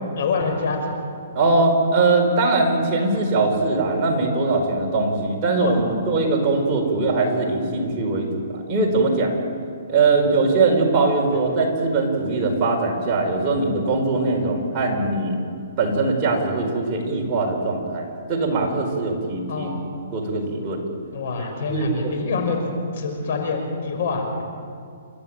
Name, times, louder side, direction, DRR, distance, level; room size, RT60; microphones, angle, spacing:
voice 1, 0.2-1.0 5.6-5.7 6.0-6.1 6.9-7.0 19.5-19.8 21.1-22.6 22.9-24.4, left 4 dB, 55° left, 3 dB, 5.8 m, -26 dB
voice 2, 1.3-9.3 9.9-15.3 15.8-19.7 20.1-20.8 21.7-22.1, right 3 dB, 25° right, -1 dB, 4.8 m, -21 dB
30.0 x 13.5 x 8.9 m, 2.3 s
hypercardioid pair, 155°, 0 cm